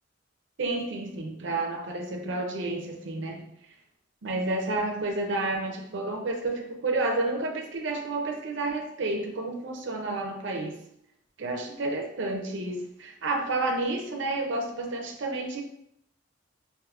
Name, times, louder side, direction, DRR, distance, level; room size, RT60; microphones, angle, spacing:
voice 1, 0.6-3.5 4.2-10.7 11.4-15.6, right 2 dB, 70° right, 1 dB, 0.5 m, -30 dB
4.7 x 2.5 x 2.4 m, 0.76 s
head